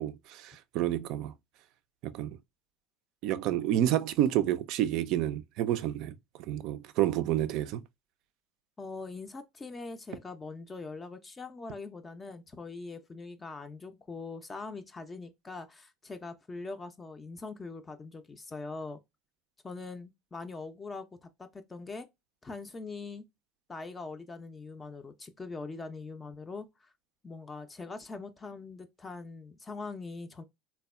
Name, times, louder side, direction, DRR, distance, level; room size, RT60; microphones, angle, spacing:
voice 1, 0.0-1.3 2.0-2.4 3.2-6.1 6.5-7.8, right 12 dB, 55° right, 0.3 m, -29 dB
voice 2, 8.8-19.0 19.6-22.1 22.4-23.2 23.7-26.9 27.2-30.4, left 3 dB, 20° left, 0.4 m, -42 dB
3.3 x 2.1 x 2.2 m
figure-of-eight pair, 70°, 0 cm